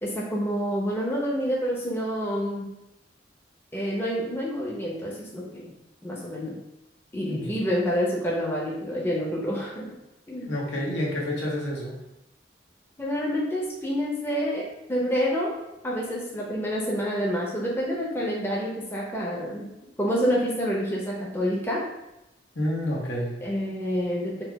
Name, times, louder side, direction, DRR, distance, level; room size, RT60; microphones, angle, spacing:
voice 1, 0.0-2.7 3.7-5.7 6.0-6.6 7.1-9.9 10.3-10.5 13.0-14.6 14.9-15.5 15.8-19.7 20.0-21.8 23.4-24.4, equal, 15° left, -4 dB, 0.7 m, -28 dB
voice 2, 10.5-12.0 22.5-23.3, left 1 dB, 80° left, -4 dB, 1.3 m, -29 dB
4.5 x 2.4 x 4.6 m, 0.91 s
head